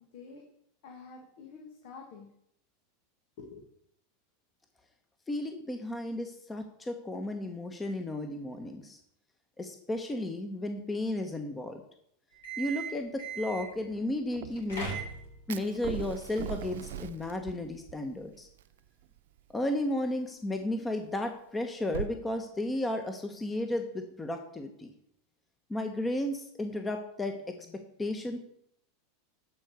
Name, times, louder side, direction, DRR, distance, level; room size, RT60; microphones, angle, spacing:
voice 1, 0.1-0.4 0.8-2.3 3.4-3.6, left 4 dB, 65° left, 2 dB, 1.7 m, -48 dB
voice 2, 5.3-9.0 9.6-11.8 12.6-14.9 15.5-18.5 19.5-24.9 25.7-28.4, left 1 dB, 15° left, 5 dB, 1.2 m, -34 dB
sound 1, 12.3-13.8 14.4-15.5, right 4 dB, 85° left, 3.6 m, -38 dB
sound 2, 13.5-15.0 15.3-15.4 15.8-18.3 19.0-19.1, right 10 dB, 65° right, 0.9 m, -41 dB
Fire, 15.5-22.1, right 10 dB, 80° right, 0.4 m, -47 dB
12.0 x 4.7 x 6.5 m, 0.73 s
hypercardioid pair, 100°, 0 cm